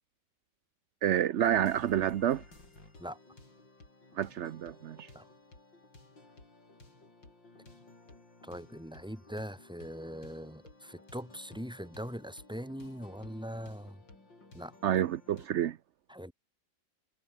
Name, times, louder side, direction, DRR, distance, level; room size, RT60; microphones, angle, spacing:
voice 1, 1.0-2.4 4.2-5.1 14.8-15.8, right 10 dB, 70° right, 0.6 m, -29 dB
sound 1, 1.4-15.5, left 2 dB, 85° left, 7.4 m, -56 dB
voice 2, 8.4-14.0 14.5-14.7 16.1-16.3, equal, ahead, 6.2 m, -41 dB
omnidirectional pair, 2.0 m